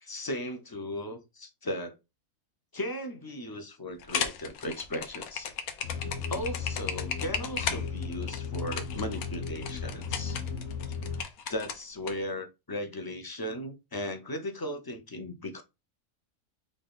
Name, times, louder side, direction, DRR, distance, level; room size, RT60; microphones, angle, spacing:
voice 1, 0.0-1.9 2.7-5.5 6.3-10.4 11.5-15.6, left 1 dB, 30° left, 0.4 m, -37 dB
sound 1, 4.0-12.1, left 7 dB, 75° left, 1.2 m, -35 dB
sound 2, 5.8-11.2, left 5 dB, 60° left, 1.1 m, -36 dB
3.8 x 3.4 x 3.9 m
omnidirectional pair, 1.5 m